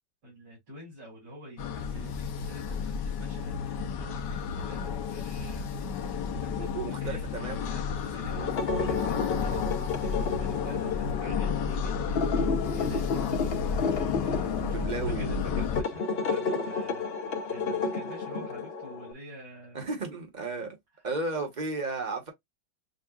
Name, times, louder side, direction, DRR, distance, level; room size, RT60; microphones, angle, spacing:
voice 1, 0.2-5.7 6.0-8.5 8.8-19.8, equal, 75° right, 3.3 m, -48 dB
sound 1, 1.6-15.8, left 6 dB, 80° left, 1.4 m, -31 dB
voice 2, 1.9-2.2 6.6-7.7 8.3-8.4 8.9-9.2 14.2-15.5 19.7-20.8 21.0-22.3, right 3 dB, 30° right, 1.1 m, -35 dB
sound 2, 8.4-19.1, left 4 dB, 55° left, 0.7 m, -32 dB
6.5 x 2.3 x 2.4 m
omnidirectional pair, 1.9 m